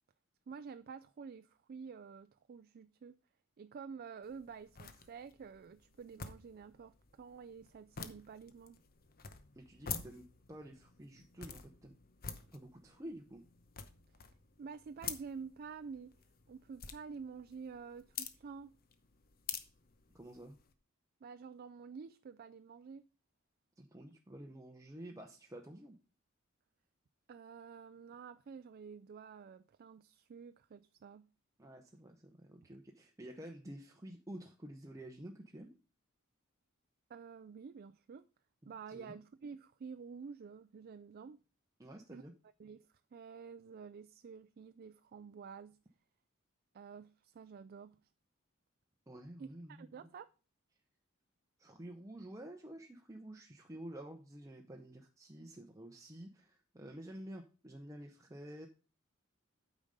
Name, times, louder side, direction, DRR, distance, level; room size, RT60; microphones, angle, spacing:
voice 1, 0.5-3.2 3.6-8.8 14.6-16.1 16.5-18.7 21.2-23.0 27.3-31.3 37.1-38.3 38.7-41.4 42.1-42.2 42.6-45.8 46.7-48.0 49.4-50.3, right 5 dB, 45° right, 0.3 m, -49 dB
sound 1, 4.2-20.7, left 7 dB, 45° left, 0.9 m, -49 dB
voice 2, 9.6-11.9 12.5-13.4 20.1-20.6 23.8-26.0 31.6-35.7 38.6-39.2 41.8-42.3 49.1-50.1 51.6-58.7, right 1 dB, 15° right, 0.8 m, -50 dB
8.7 x 5.1 x 5.3 m
head